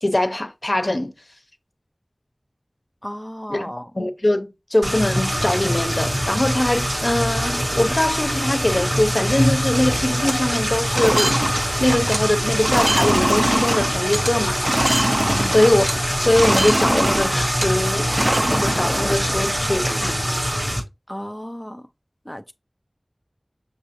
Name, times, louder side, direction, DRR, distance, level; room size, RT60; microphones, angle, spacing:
voice 1, 0.0-1.1 3.5-11.3 11.8-14.6 15.4-15.9 16.2-18.2 18.5-20.2, left 1 dB, 55° left, 0.6 m, -22 dB
voice 2, 3.0-3.9 15.3-15.6 21.1-21.9 22.3-22.5, equal, 10° left, 0.3 m, -33 dB
sound 1, 4.8-20.8, equal, 85° right, 1.5 m, -23 dB
sound 2, 5.0-6.1 6.6-6.7 6.9-7.3 7.7-7.9 8.2-9.3 9.5-9.8 10.0-16.0 16.3-20.1, right 1 dB, 40° right, 0.5 m, -24 dB
6.1 x 2.7 x 2.9 m
wide cardioid pair, 40°, 0 cm